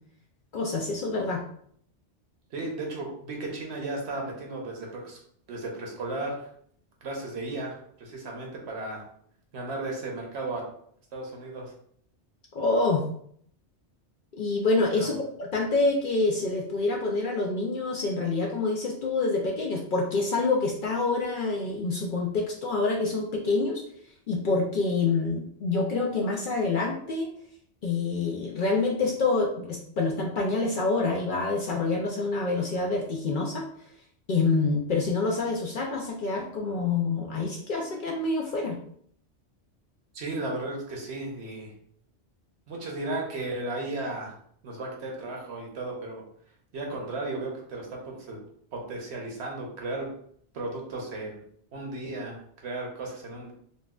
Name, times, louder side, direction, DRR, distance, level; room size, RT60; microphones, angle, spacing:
voice 1, 0.5-1.4 12.5-13.0 14.3-23.8 24.3-27.3 27.8-33.7 34.3-38.8, left 3 dB, 60° left, -1 dB, 0.6 m, -27 dB
voice 2, 2.5-5.2 5.5-6.5 7.0-9.0 9.5-10.6 11.1-11.7 14.9-15.1 40.1-41.7 42.7-44.3 44.6-46.2 46.7-48.4 48.7-50.1 50.5-51.4 51.7-53.5, right 2 dB, 70° right, 0 dB, 1.1 m, -35 dB
4.1 x 2.3 x 2.3 m, 0.64 s
omnidirectional pair, 1.2 m